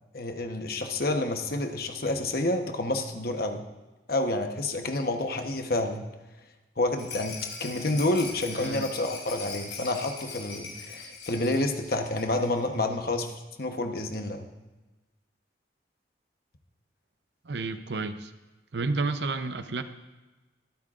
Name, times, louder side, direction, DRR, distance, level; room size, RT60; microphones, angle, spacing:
voice 1, 0.1-3.6 4.1-6.0 6.8-13.3 13.6-14.5, left 2 dB, 55° left, 5 dB, 1.1 m, -29 dB
Rattle, 7.0-12.7 12.9-13.0 13.3-13.4, left 5 dB, 85° left, 4.3 m, -41 dB
voice 2, 8.6-8.9 17.4-18.3 18.7-19.8, right 3 dB, 70° right, 9 dB, 0.7 m, -31 dB
23.5 x 9.1 x 2.5 m, 1.1 s
head